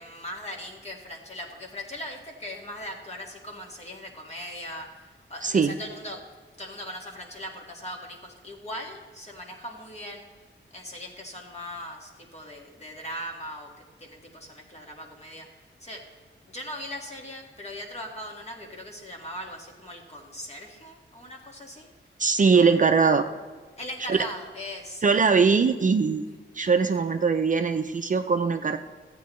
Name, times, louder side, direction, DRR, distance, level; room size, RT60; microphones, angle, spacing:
voice 1, 0.0-4.9 5.3-6.2 6.6-10.3 10.7-15.5 15.8-16.0 16.4-21.9 22.5-22.8 23.8-25.1, equal, 30° left, 0 dB, 1.7 m, -39 dB
voice 2, 5.4-5.7 22.2-23.3 24.1-24.2 25.0-26.2 26.5-28.8, right 5 dB, 40° right, 6 dB, 0.5 m, -21 dB
14.0 x 8.4 x 3.1 m, 1.4 s
wide cardioid pair, 105°, 21 cm